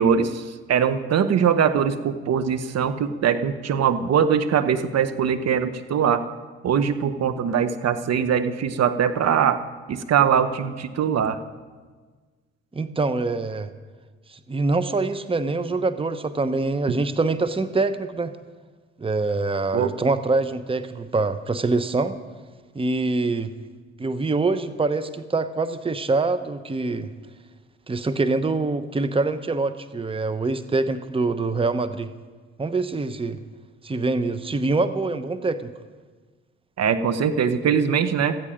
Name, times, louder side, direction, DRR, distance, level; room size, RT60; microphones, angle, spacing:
voice 1, 0.0-6.3 6.6-9.6 9.9-11.4 19.7-19.9 36.8-38.4, right 7 dB, 50° right, 10 dB, 1.1 m, -22 dB
voice 2, 12.7-13.7 14.3-18.3 19.0-22.2 22.7-23.5 24.0-27.1 27.9-32.1 32.6-33.4 33.8-35.7, right 3 dB, 15° right, 12 dB, 1.0 m, -24 dB
17.0 x 14.0 x 5.2 m, 1.4 s
hypercardioid pair, 55°, 33 cm